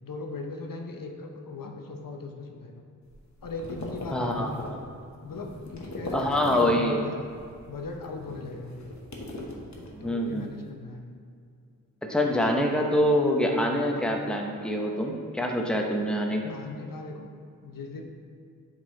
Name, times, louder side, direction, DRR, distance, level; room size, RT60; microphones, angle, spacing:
voice 1, 0.0-2.8 3.4-4.7 5.2-7.3 7.6-8.9 10.0-11.1 16.5-17.3 17.6-18.0, left 3 dB, 75° left, 2 dB, 0.7 m, -39 dB
sound 1, 3.0-6.9 7.2-10.4, left 1 dB, 55° left, 1.0 m, -40 dB
voice 2, 4.1-4.8 6.1-7.1 9.9-10.5 12.0-16.5, equal, 5° left, 1 dB, 0.7 m, -25 dB
7.6 x 4.0 x 3.8 m, 2.3 s
wide cardioid pair, 75°, 33 cm